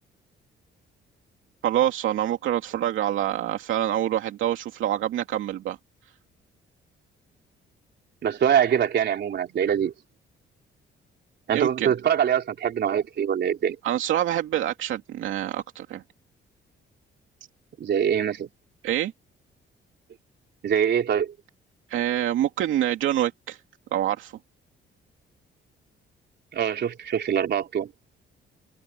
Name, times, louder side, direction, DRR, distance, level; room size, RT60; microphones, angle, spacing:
voice 1, 1.6-5.8 11.5-11.9 13.8-16.0 18.8-19.1 21.9-23.6 23.9-24.3, right 12 dB, 80° right, 2.6 m, -26 dB
voice 2, 8.2-9.9 11.5-13.8 17.8-18.5 20.6-21.3 26.5-27.9, right 8 dB, 60° right, 3.6 m, -23 dB
open air
cardioid pair, 90°, 20 cm